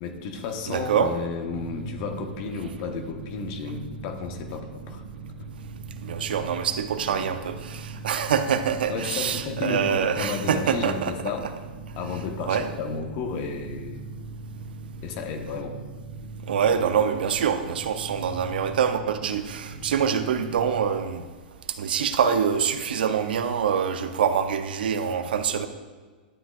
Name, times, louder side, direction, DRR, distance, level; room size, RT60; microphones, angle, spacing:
voice 1, 0.0-5.0 7.1-7.2 8.9-11.5 12.0-14.1 15.0-15.7, left 4 dB, 50° left, 4 dB, 1.2 m, -32 dB
voice 2, 0.7-1.1 6.0-11.2 12.4-12.7 16.5-21.2 21.8-25.7, right 7 dB, 75° right, 9 dB, 0.6 m, -25 dB
sound 1, 1.5-21.0, right 3 dB, 45° right, 1.5 m, -40 dB
11.5 x 7.6 x 2.5 m, 1.4 s
hypercardioid pair, 110°, 5 cm